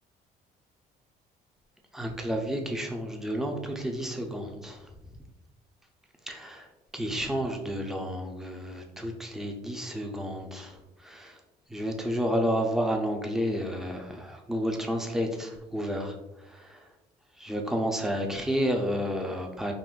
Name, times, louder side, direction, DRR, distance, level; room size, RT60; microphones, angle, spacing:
voice 1, 1.9-4.8 6.3-6.7 6.9-10.8 11.0-11.4 11.7-16.1 16.5-16.8 17.4-19.7, equal, 5° right, 2 dB, 0.4 m, -31 dB
3.7 x 2.5 x 2.4 m, 1.0 s
cardioid pair, 110°, 17 cm